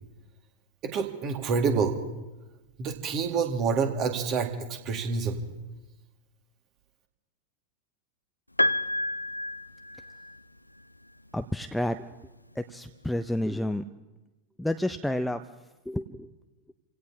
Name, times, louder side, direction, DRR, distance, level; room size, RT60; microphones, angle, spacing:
voice 1, 0.8-2.0 2.8-5.4, right 5 dB, 35° right, 4 dB, 2.0 m, -27 dB
Piano, 8.6-10.6 11.9-12.0, left 1 dB, 85° left, 0.4 m, -29 dB
voice 2, 11.3-12.0 12.6-13.8 14.6-15.4 15.9-16.3, left 1 dB, 5° left, 8 dB, 0.6 m, -30 dB
30.0 x 17.0 x 2.8 m, 1.1 s
figure-of-eight pair, 90°, 0 cm